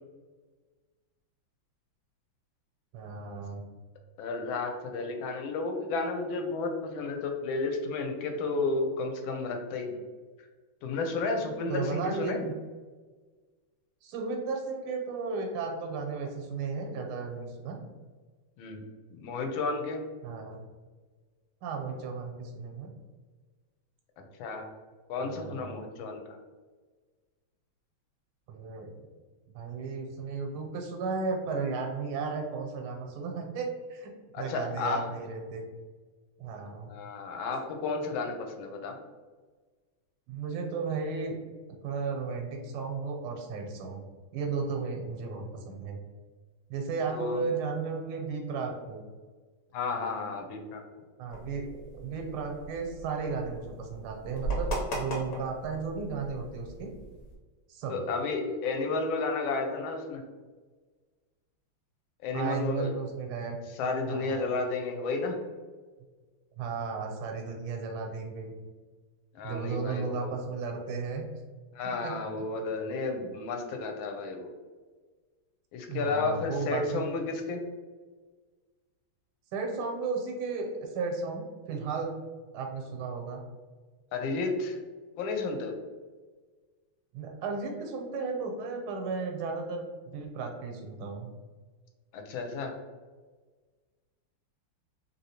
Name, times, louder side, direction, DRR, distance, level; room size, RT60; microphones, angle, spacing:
voice 1, 2.9-3.6 11.7-12.5 14.0-17.8 20.2-20.6 21.6-22.9 25.2-25.9 28.5-28.9 29.5-35.6 36.4-36.9 40.3-41.4 41.7-44.0 44.3-46.0 46.7-49.0 51.2-51.7 51.9-56.9 57.7-58.0 62.3-63.6 64.1-64.5 66.6-68.5 69.4-71.2 72.0-72.5 75.9-77.0 79.5-82.2 82.5-83.4 87.1-91.3, right 4 dB, 85° right, 2 dB, 1.5 m, -34 dB
voice 2, 4.2-10.0 10.8-12.4 18.6-18.8 19.1-20.0 24.4-24.7 25.1-26.2 34.3-35.1 36.9-39.0 47.1-47.4 49.7-50.8 57.9-60.2 62.2-62.9 63.7-65.4 69.3-70.3 71.7-74.5 75.7-77.7 84.1-84.8 85.2-85.7 92.1-92.7, left 3 dB, 75° left, 3 dB, 1.3 m, -32 dB
sound 1, 51.3-57.4, right 2 dB, 60° left, 1.1 m, -38 dB
3.2 x 2.8 x 2.8 m, 1.4 s
omnidirectional pair, 2.3 m